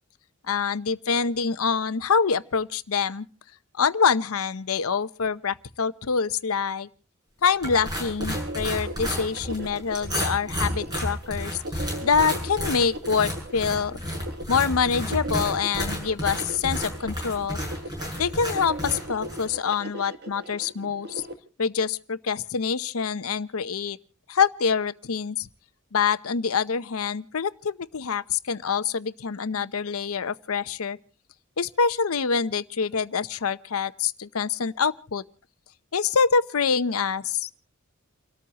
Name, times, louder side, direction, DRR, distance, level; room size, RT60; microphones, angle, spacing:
voice 1, 0.5-3.3 3.7-6.9 7.4-14.0 14.5-17.6 18.2-21.2 21.6-24.0 24.3-25.5 25.9-31.0 31.6-35.2 35.9-37.5, left 6 dB, 85° left, 0.7 m, -25 dB
sound 1, 7.6-19.5, equal, 20° right, 7.1 m, -32 dB
sound 2, 7.6-21.3, right 1 dB, 50° right, 1.9 m, -38 dB
29.5 x 13.5 x 2.9 m
head